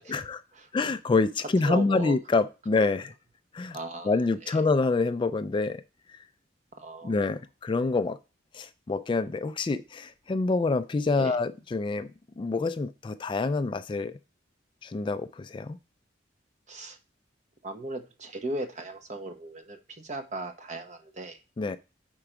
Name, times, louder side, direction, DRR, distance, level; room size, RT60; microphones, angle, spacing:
voice 1, 0.1-0.4 0.7-3.1 3.5-3.8 4.0-5.8 7.0-8.2 8.5-12.1 12.4-14.1 14.8-15.8 21.6-21.8, left 3 dB, 25° left, 0.3 m, -27 dB
voice 2, 1.6-2.2 3.7-4.6 6.7-7.2 11.1-11.4 16.7-17.0 17.6-21.4, right 2 dB, 40° right, 0.9 m, -37 dB
5.7 x 4.5 x 5.0 m
head